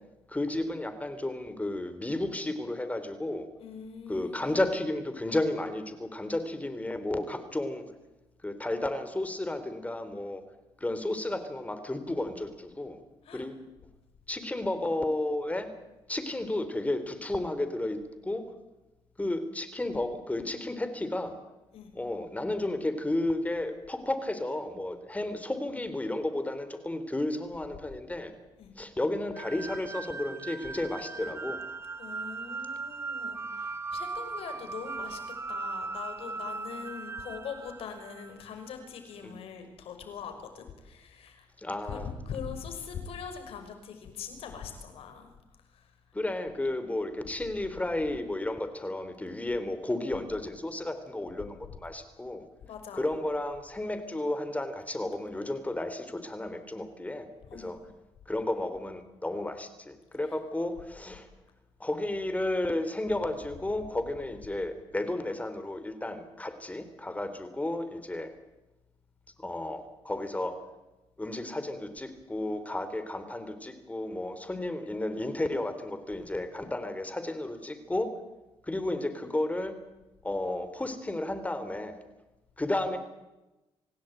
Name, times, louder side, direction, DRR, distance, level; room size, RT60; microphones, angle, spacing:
voice 1, 0.3-3.5 4.1-7.8 8.4-10.4 10.8-13.0 13.3-13.6 14.3-15.7 16.1-18.5 19.2-21.4 21.9-28.3 28.8-31.6 39.2-39.3 41.6-42.1 46.1-52.5 52.9-57.3 57.5-57.8 58.3-61.3 61.8-68.3 69.4-70.6 71.2-78.1 78.6-79.8 80.2-81.9 82.6-83.0, left 1 dB, 15° left, 10 dB, 3.8 m, -32 dB
voice 2, 3.6-4.6 13.3-13.4 21.7-21.9 28.6-28.7 32.0-35.2 35.5-41.4 41.9-45.3 52.6-53.1 57.5-57.8, left 6 dB, 75° left, 6 dB, 5.9 m, -42 dB
sound 1, 29.3-38.5, right 4 dB, 25° right, 1.1 m, -38 dB
27.0 x 17.0 x 9.2 m, 1.0 s
cardioid pair, 85°, 10 cm